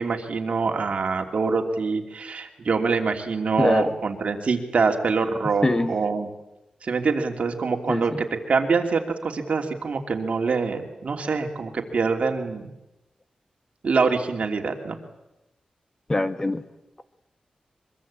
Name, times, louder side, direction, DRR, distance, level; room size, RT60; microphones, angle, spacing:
voice 1, 0.0-6.3 6.8-12.7 13.8-15.0, right 4 dB, 60° right, 4 dB, 3.0 m, -25 dB
voice 2, 3.6-3.9 5.6-5.9 7.9-8.2 16.1-16.6, left 2 dB, 25° left, 10 dB, 1.3 m, -23 dB
24.0 x 23.0 x 8.7 m, 0.94 s
wide cardioid pair, 100°, 2 cm